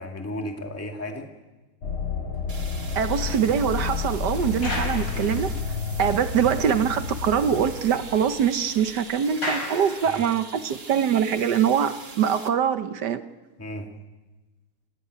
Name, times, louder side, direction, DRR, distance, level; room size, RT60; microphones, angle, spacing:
voice 1, 0.0-1.3 5.1-5.4 10.1-10.2 13.6-13.9, left 1 dB, 5° left, 3 dB, 1.8 m, -34 dB
sound 1, 1.8-9.0, left 5 dB, 75° left, 3.2 m, -31 dB
sound 2, 2.5-6.0 6.5-6.6 7.0-7.1 7.3-10.6, left 1 dB, 55° left, 6.4 m, -38 dB
sound 3, 2.5-12.5, right 4 dB, 30° right, 1.6 m, -43 dB
voice 2, 2.9-5.5 6.0-13.2, right 8 dB, 60° right, 11 dB, 1.4 m, -23 dB
28.5 x 16.5 x 9.5 m, 1.2 s
omnidirectional pair, 2.3 m